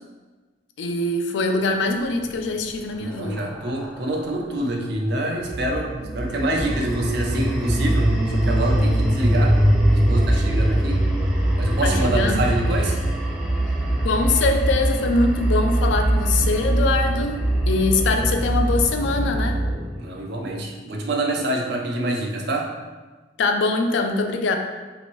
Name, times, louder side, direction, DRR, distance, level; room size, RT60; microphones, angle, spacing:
voice 1, 0.8-3.5 11.8-12.5 14.0-19.6 23.4-24.5, left 3 dB, 75° left, 5 dB, 0.3 m, -23 dB
sound 1, 2.1-4.6 6.2-18.5, equal, ahead, 0.3 m, -26 dB
voice 2, 3.0-9.6 9.9-11.0 11.6-13.0 20.0-22.7, right 1 dB, 60° right, 0 dB, 0.5 m, -26 dB
sound 2, 5.4-19.8, right 1 dB, 35° right, 1.0 m, -24 dB
2.8 x 2.6 x 3.0 m, 1.3 s
head